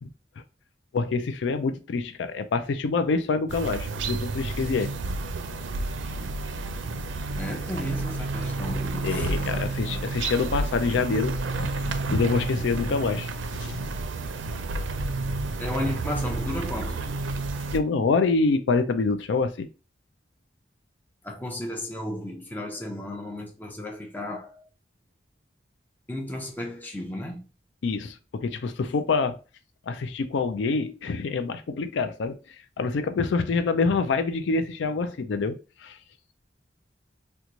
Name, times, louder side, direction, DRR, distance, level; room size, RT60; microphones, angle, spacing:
voice 1, 0.9-4.9 9.0-13.3 13.6-13.9 17.7-19.7 27.8-29.4 29.9-32.4 32.8-36.0, left 4 dB, 80° left, 0.4 m, -26 dB
sound 1, 3.5-17.8, right 3 dB, 85° right, 0.4 m, -30 dB
voice 2, 7.4-10.0 15.6-17.0 21.2-24.6 26.1-27.4, left 1 dB, 10° left, 0.6 m, -34 dB
3.0 x 2.2 x 3.8 m
head